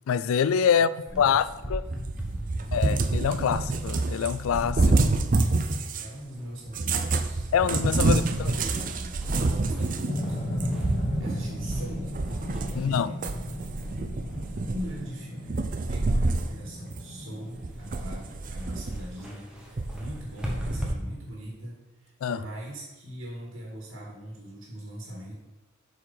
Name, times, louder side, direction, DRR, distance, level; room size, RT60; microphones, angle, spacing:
voice 1, 0.1-0.9 1.2-1.4 1.7-1.8 2.7-5.0 7.5-8.5 12.7-13.1 22.2-22.4, left 7 dB, 80° left, 0.3 m, -25 dB
voice 2, 0.7-3.1 6.0-7.5 8.0-12.1 12.6-13.3 14.7-25.3, equal, 65° right, 2.1 m, -41 dB
sound 1, 1.1-20.9, equal, 5° right, 1.2 m, -43 dB
Cat, 1.9-6.2 6.7-12.9 13.2-15.1 15.5-16.6 16.9-17.0 17.6-19.2 19.8-20.9, right 3 dB, 40° right, 0.5 m, -27 dB
sound 2, 10.1-18.3, equal, 35° left, 1.2 m, -35 dB
7.7 x 5.2 x 5.7 m
head